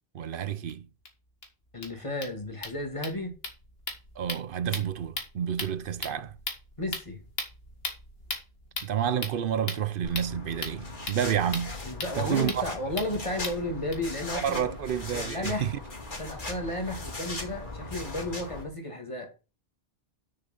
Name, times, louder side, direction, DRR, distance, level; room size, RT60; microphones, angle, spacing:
voice 1, 0.1-0.9 4.2-6.4 8.8-11.8 12.2-12.7 14.3-15.7, right 9 dB, 65° right, 0.8 m, -29 dB
sound 1, 0.7-0.8 1.1-1.2 1.4-1.5 1.7-13.9, left 2 dB, 70° left, 2.2 m, -39 dB
voice 2, 1.7-3.4 5.7-5.8 6.8-7.2 11.8-14.8 15.1-15.7 16.2-19.4, left 1 dB, 30° left, 2.1 m, -33 dB
sound 2, 10.0-18.6, left 2 dB, 50° left, 2.7 m, -39 dB
6.7 x 5.7 x 7.0 m
omnidirectional pair, 1.0 m